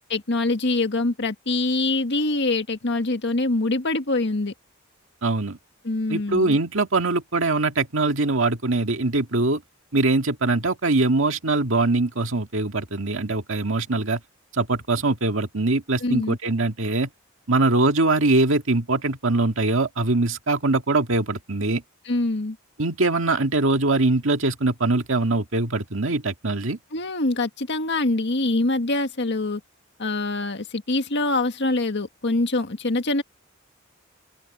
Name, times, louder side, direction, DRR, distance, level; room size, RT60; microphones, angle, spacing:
voice 1, 0.1-4.5 5.8-6.6 16.0-16.4 22.0-22.6 26.9-29.6 30.0-33.2, left 2 dB, 55° left, 1.8 m, -24 dB
voice 2, 5.2-5.6 6.1-9.6 9.9-14.2 14.5-17.1 17.5-21.8 22.8-26.8, right 2 dB, 70° right, 2.1 m, -22 dB
open air
head